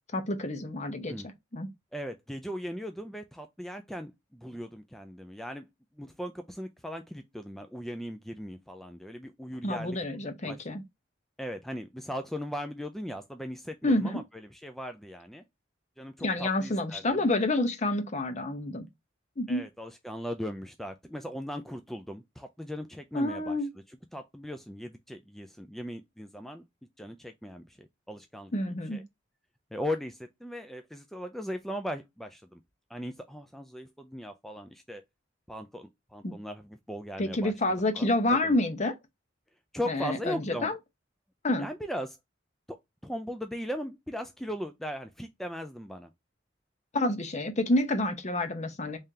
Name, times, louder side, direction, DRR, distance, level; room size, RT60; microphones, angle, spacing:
voice 1, 0.1-1.1 1.5-1.7 9.6-10.8 13.8-14.2 16.2-18.9 19.4-19.6 23.1-23.7 28.5-29.0 36.2-36.3 37.2-38.9 39.9-40.8 41.4-41.7 46.9-49.0, left 1 dB, 40° left, 0.8 m, -28 dB
voice 2, 1.9-5.7 6.0-10.0 10.4-10.6 11.4-15.4 16.0-17.3 19.5-23.6 23.9-26.6 27.0-28.5 28.9-29.0 29.7-32.6 32.9-35.0 35.5-37.5 37.9-38.6 39.7-40.7 41.6-42.2 42.7-42.8 43.0-46.1, equal, ahead, 0.3 m, -38 dB
3.7 x 3.2 x 2.7 m
head